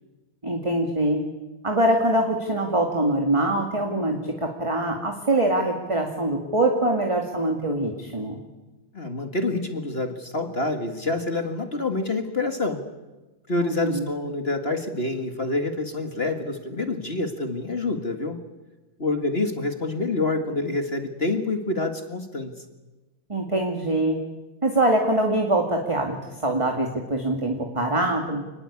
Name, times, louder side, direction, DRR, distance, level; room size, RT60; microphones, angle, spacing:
voice 1, 0.4-1.2 1.6-8.4 13.6-14.1 23.3-24.2 24.6-28.4, right 1 dB, 15° right, 2 dB, 2.3 m, -24 dB
voice 2, 8.9-12.8 13.5-18.4 19.0-22.5, left 2 dB, 30° left, 6 dB, 1.9 m, -27 dB
28.5 x 20.5 x 8.5 m, 1.1 s
omnidirectional pair, 2.4 m